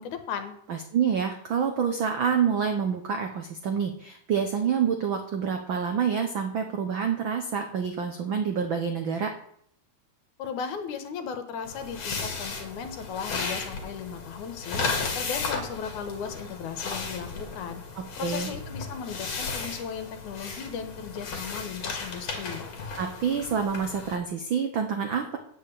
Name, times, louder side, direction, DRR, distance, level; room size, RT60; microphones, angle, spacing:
voice 1, 0.0-0.5 10.4-14.8 15.1-17.8 18.2-22.7, left 7 dB, 75° left, 8 dB, 2.6 m, -36 dB
voice 2, 0.7-9.3 18.0-18.5 23.0-25.4, right 7 dB, 80° right, 5 dB, 1.1 m, -27 dB
sound 1, 11.6-24.2, left 4 dB, 55° left, 2.8 m, -35 dB
9.0 x 6.2 x 8.4 m, 0.67 s
omnidirectional pair, 3.6 m